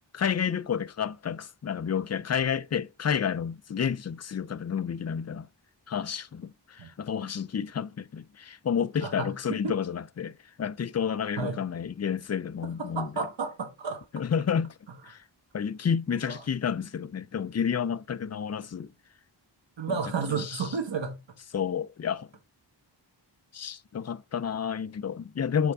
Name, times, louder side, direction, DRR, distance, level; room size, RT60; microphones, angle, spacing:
voice 1, 0.1-5.5 5.9-10.3 10.6-13.1 14.1-14.7 15.0-15.2 15.5-18.9 19.9-20.0 20.3-20.6 21.5-22.3 23.5-25.7, left 7 dB, 35° left, 0.5 m, -30 dB
voice 2, 9.0-9.3 9.6-9.8 11.4-11.6 12.8-14.0 16.3-16.4 19.8-21.2, right 5 dB, 75° right, 1.4 m, -32 dB
6.3 x 5.1 x 3.5 m
wide cardioid pair, 105°, 45 cm